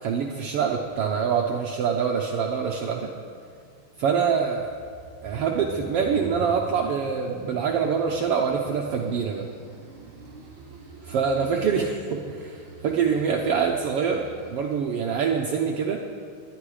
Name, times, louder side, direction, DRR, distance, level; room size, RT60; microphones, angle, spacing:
voice 1, 0.0-3.1 4.0-4.7 5.2-9.5 11.0-16.0, right 6 dB, 80° right, 1 dB, 1.3 m, -25 dB
sound 1, 3.4-14.5, right 3 dB, 45° right, 2.9 m, -44 dB
19.0 x 11.0 x 4.9 m, 2.2 s
omnidirectional pair, 3.7 m